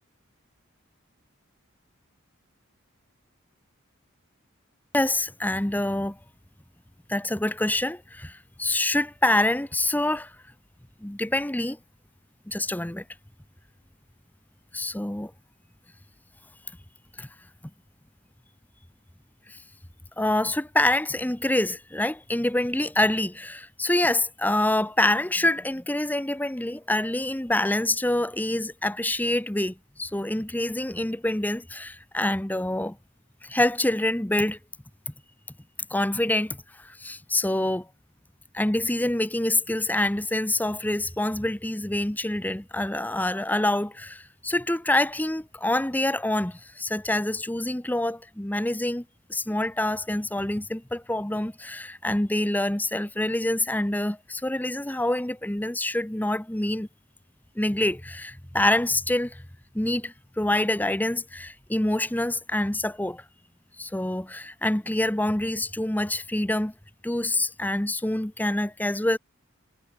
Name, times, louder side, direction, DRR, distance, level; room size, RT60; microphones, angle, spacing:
voice 1, 4.9-6.2 7.1-10.3 11.0-11.8 12.5-13.0 14.7-15.3 17.2-17.3 19.5-19.6 20.2-33.0 33.4-34.6 35.9-37.9 38.5-49.0 49.3-56.9 57.6-59.4 59.7-63.2 63.8-66.7 67.0-69.2, left 1 dB, 10° left, 0.8 m, -26 dB
head